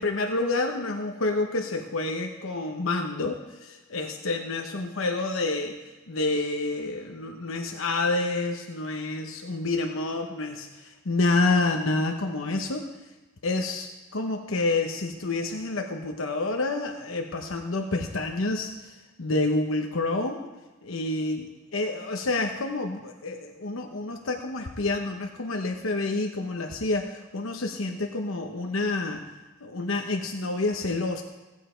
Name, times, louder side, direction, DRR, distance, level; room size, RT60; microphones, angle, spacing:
voice 1, 0.0-5.7 6.1-12.8 13.4-18.9 19.2-20.4 20.8-21.5 21.7-29.2 29.6-31.2, left 2 dB, 80° left, 4 dB, 0.9 m, -28 dB
16.5 x 9.2 x 4.5 m, 1.1 s
head